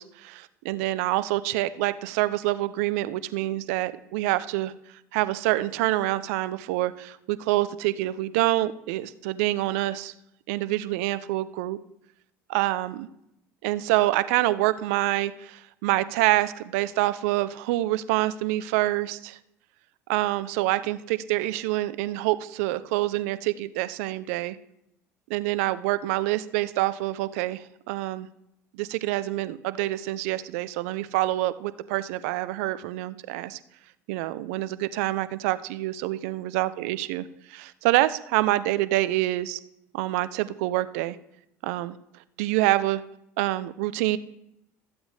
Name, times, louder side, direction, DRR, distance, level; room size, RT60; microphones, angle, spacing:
voice 1, 0.0-4.7 5.1-10.1 10.5-11.8 12.5-12.9 13.6-19.4 20.1-24.6 25.3-28.3 28.7-33.6 34.1-39.6 39.9-41.2 41.6-41.9 42.4-43.0 43.4-44.2, right 17 dB, 75° right, 15 dB, 0.5 m, -26 dB
14.0 x 7.9 x 3.3 m, 0.80 s
hypercardioid pair, 75°, 8 cm